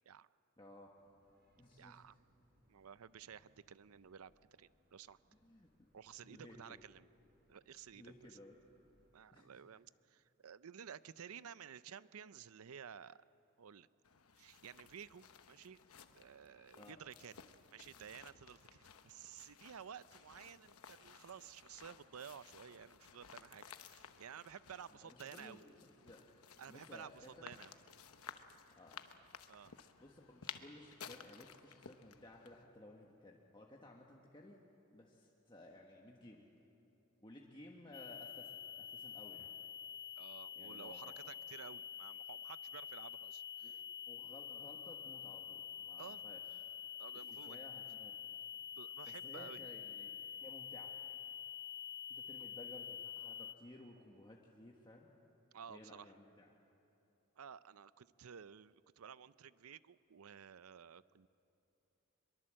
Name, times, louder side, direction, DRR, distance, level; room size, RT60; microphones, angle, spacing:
voice 1, 0.6-0.9 1.6-2.2 5.4-5.7 6.2-6.8 7.9-8.5 9.3-9.6 16.8-17.0 25.0-25.7 26.0-26.2 26.7-27.5 28.8-29.0 30.0-34.6 34.9-36.5 37.2-39.5 40.6-41.2 43.6-46.6 47.3-48.2 49.0-51.0 52.1-55.1 55.7-56.5, left 1 dB, 20° left, -1 dB, 1.4 m, -57 dB
sound 1, 0.9-9.1, equal, 45° right, 7.5 m, -76 dB
voice 2, 1.8-2.2 2.7-4.3 4.6-5.2 5.9-7.1 7.5-8.1 9.1-13.2 13.6-13.9 14.4-15.8 16.1-17.3 17.7-25.6 26.6-27.7 29.5-29.7 40.2-43.8 46.0-46.2 47.0-47.6 48.8-49.6 55.5-56.1 57.4-61.3, right 7 dB, 80° right, 16 dB, 0.5 m, -53 dB
sound 2, 14.0-32.6, left 7 dB, 80° left, 1.0 m, -56 dB
sound 3, 37.9-53.5, left 8 dB, 55° left, 0.9 m, -48 dB
24.0 x 22.5 x 7.6 m, 2.9 s
head